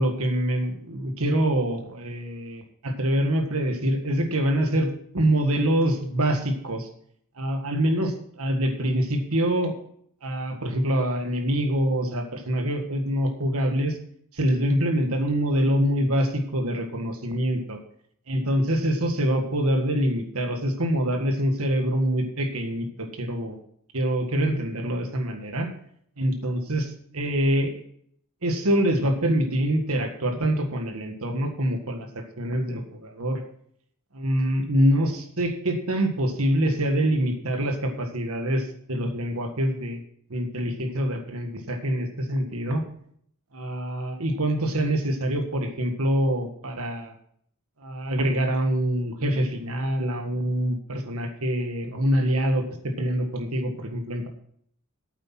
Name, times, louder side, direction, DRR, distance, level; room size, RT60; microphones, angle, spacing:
voice 1, 0.0-6.9 7.4-9.8 10.2-14.0 14.3-17.8 18.3-23.6 23.9-25.7 26.2-27.8 28.4-32.1 32.4-33.4 34.1-40.0 40.3-42.8 43.5-47.1 47.8-54.3, equal, 75° right, 5 dB, 1.7 m, -25 dB
8.7 x 8.0 x 5.9 m, 0.65 s
head